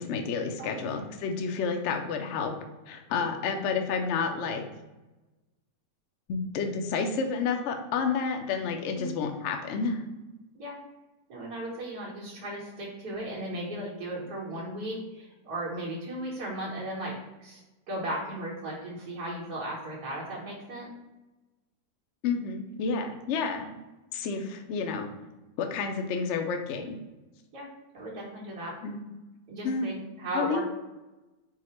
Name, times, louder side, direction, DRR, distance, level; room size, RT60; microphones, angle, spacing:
voice 1, 0.0-2.5 2.9-4.6 6.3-10.0 22.2-23.7 24.1-25.1 25.6-27.0 28.8-29.0 29.6-29.9 30.3-30.6, left 5 dB, 75° left, 5 dB, 0.6 m, -30 dB
voice 2, 11.3-17.1 17.4-17.6 17.9-20.9 27.5-27.7 27.9-28.7 29.5-30.6, right 1 dB, 65° right, -7 dB, 1.5 m, -36 dB
4.8 x 2.1 x 4.2 m, 1.1 s
omnidirectional pair, 1.8 m